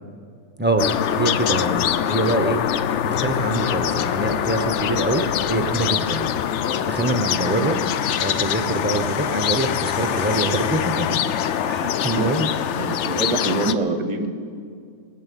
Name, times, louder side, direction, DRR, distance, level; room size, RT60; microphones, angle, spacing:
voice 1, 0.6-2.6 3.2-6.3 6.8-7.8 8.2-11.2 11.6-12.5, right 2 dB, 15° right, 6 dB, 0.3 m, -24 dB
sound 1, 0.7-6.3, left 1 dB, 20° left, 1.9 m, -40 dB
sound 2, 0.8-13.7, left 9 dB, 75° left, 0.6 m, -24 dB
voice 2, 12.0-12.3 12.7-14.3, right 3 dB, 30° right, 8 dB, 0.8 m, -25 dB
21.0 x 7.5 x 8.5 m, 2.3 s
omnidirectional pair, 1.8 m